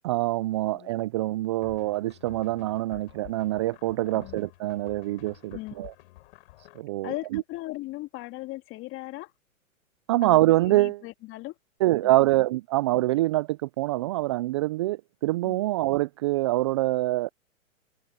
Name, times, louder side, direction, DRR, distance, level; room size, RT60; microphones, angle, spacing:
voice 1, 0.0-5.9 6.8-7.4 10.1-11.0 11.8-17.3, right 17 dB, 20° right, 0.4 m, -25 dB
sound 1, 1.6-6.8, left 19 dB, 45° left, 3.9 m, -51 dB
voice 2, 7.0-9.3 10.2-11.5 12.0-12.1 15.4-15.6, left 18 dB, 30° left, 2.7 m, -38 dB
hypercardioid pair, 120°, 41 cm